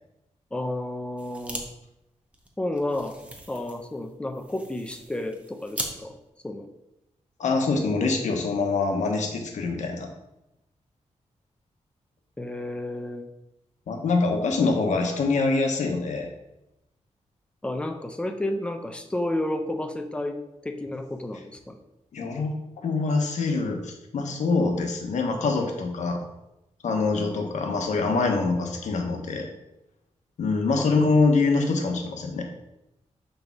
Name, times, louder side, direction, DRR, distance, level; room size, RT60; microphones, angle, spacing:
voice 1, 0.5-1.7 2.6-3.2 3.5-6.2 6.4-6.7 12.4-13.3 17.6-21.8 30.8-30.9, left 1 dB, 10° left, 6 dB, 0.5 m, -31 dB
sound 1, 1.2-1.6 1.9-2.0 2.3-5.9, right 1 dB, 10° right, 0.8 m, -39 dB
voice 2, 7.4-10.1 13.9-16.3 22.1-22.6 22.8-26.2 26.8-29.5 30.4-32.5, left 3 dB, 85° left, 3 dB, 1.1 m, -24 dB
6.7 x 3.4 x 5.9 m, 0.92 s
wide cardioid pair, 165°, 12 cm